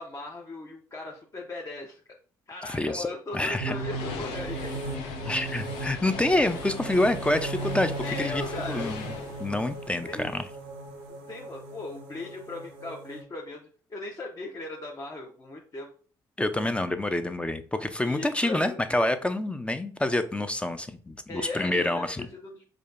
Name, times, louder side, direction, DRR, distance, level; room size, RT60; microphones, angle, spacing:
voice 1, 0.0-2.0 2.5-4.8 8.0-9.0 9.8-10.3 11.1-15.9 18.0-18.8 21.3-22.7, left 2 dB, 35° left, -1 dB, 0.7 m, -38 dB
voice 2, 2.7-3.1 3.3-3.7 5.3-7.9 8.2-8.4 8.7-9.1 9.4-10.4 16.4-22.2, left 1 dB, 10° left, 9 dB, 0.4 m, -27 dB
sound 1, 3.3-10.7, left 5 dB, 80° left, 0.5 m, -40 dB
sound 2, 3.6-13.2, right 3 dB, 85° right, 0.6 m, -37 dB
4.8 x 2.3 x 2.4 m, 0.43 s
supercardioid pair, 60°, 9 cm